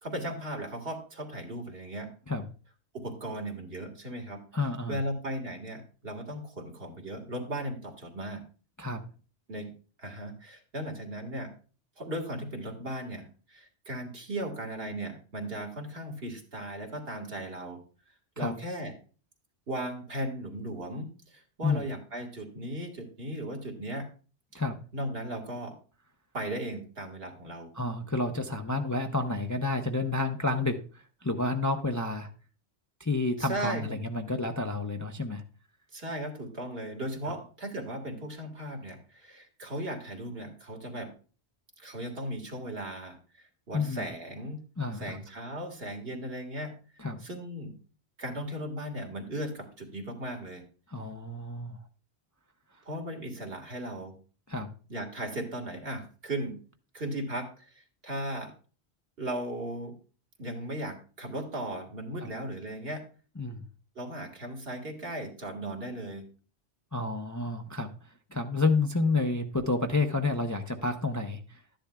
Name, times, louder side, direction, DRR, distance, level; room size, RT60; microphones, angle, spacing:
voice 1, 0.0-2.1 2.9-4.4 4.9-8.4 9.5-9.7 10.0-11.5 12.0-17.8 18.4-18.9 19.7-24.1 24.5-24.6 24.9-25.7 26.3-27.7 33.4-33.8 35.9-41.1 41.8-44.6 44.9-46.7 47.2-47.8 48.2-50.6 52.9-54.1 54.9-56.6 56.9-58.5 59.2-59.9 60.4-63.0 64.0-66.3, right 1 dB, 60° right, 2 dB, 2.0 m, -37 dB
voice 2, 4.5-5.0 8.8-9.0 18.4-18.5 21.6-21.8 24.5-24.8 27.7-32.3 33.0-35.4 37.2-37.3 43.7-44.1 44.8-45.2 47.0-47.2 50.9-51.8 54.5-54.7 62.2-62.3 63.4-63.6 66.9-67.9 68.3-71.6, left 3 dB, 20° left, 5 dB, 0.6 m, -30 dB
12.5 x 10.5 x 2.3 m, 0.37 s
omnidirectional pair, 1.1 m